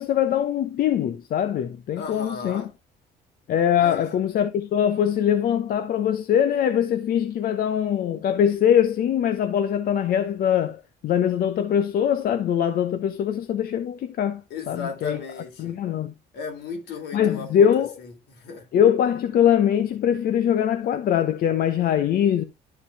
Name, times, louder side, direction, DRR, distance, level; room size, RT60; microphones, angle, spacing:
voice 1, 0.0-2.6 3.5-15.2 15.6-16.1 17.1-17.9 18.7-22.4, left 9 dB, 60° left, 1.0 m, -22 dB
voice 2, 2.0-2.7 3.8-4.1 14.5-15.8 16.3-18.7, left 5 dB, 80° left, 3.7 m, -36 dB
11.5 x 4.8 x 3.5 m
cardioid pair, 110°, 17 cm